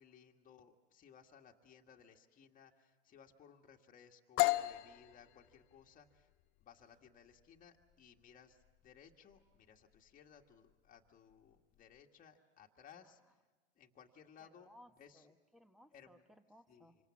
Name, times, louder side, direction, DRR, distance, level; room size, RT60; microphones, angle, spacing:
voice 1, 0.0-6.3 6.6-13.4 13.8-15.3 15.9-16.2 16.7-16.9, left 7 dB, 25° left, 2 dB, 1.9 m, -61 dB
sound 1, 4.4-12.0, left 20 dB, 40° left, 0.9 m, -40 dB
voice 2, 14.4-17.0, left 1 dB, ahead, 9 dB, 1.4 m, -63 dB
26.5 x 26.0 x 7.3 m, 1.3 s
hypercardioid pair, 110°, 33 cm